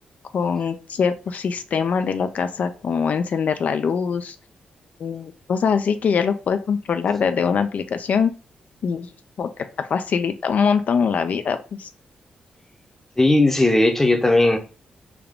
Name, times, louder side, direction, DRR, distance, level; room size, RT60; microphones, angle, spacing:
voice 1, 0.3-4.4 5.0-8.3 8.8-9.1 9.4-11.9, left 6 dB, 60° left, 0.3 m, -23 dB
voice 2, 13.2-14.6, left 2 dB, 15° left, 0.7 m, -17 dB
3.5 x 2.2 x 3.6 m
cardioid pair, 85°, 3 cm